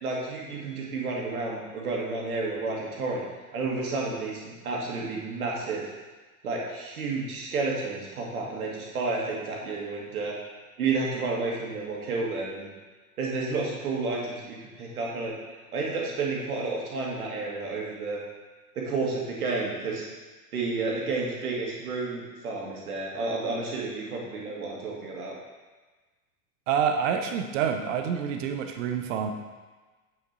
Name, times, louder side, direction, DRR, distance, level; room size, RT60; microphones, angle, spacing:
voice 1, 0.0-3.2 3.5-5.9 6.4-10.4 10.8-12.7 13.2-15.4 15.7-18.2 18.8-20.1 20.5-25.4, right 3 dB, 65° right, -3 dB, 2.3 m, -31 dB
voice 2, 26.7-29.3, right 7 dB, 50° right, 5 dB, 1.1 m, -27 dB
8.2 x 6.6 x 4.2 m, 1.3 s
figure-of-eight pair, 85°, 46 cm